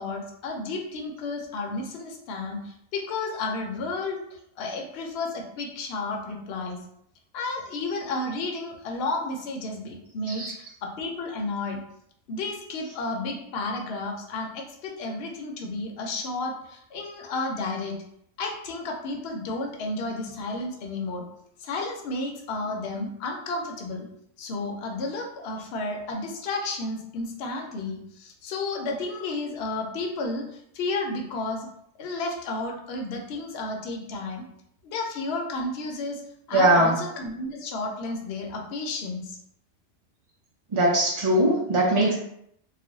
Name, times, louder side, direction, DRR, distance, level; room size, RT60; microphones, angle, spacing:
voice 1, 0.0-4.2 4.6-6.8 7.3-11.8 12.3-18.0 18.4-21.3 21.6-24.1 24.4-31.7 32.0-34.4 34.8-36.2 36.5-39.4, left 2 dB, 65° left, 1 dB, 0.8 m, -32 dB
voice 2, 36.5-37.0 40.7-42.1, right 1 dB, 55° right, -4 dB, 0.3 m, -20 dB
2.4 x 2.1 x 3.9 m, 0.73 s
omnidirectional pair, 1.2 m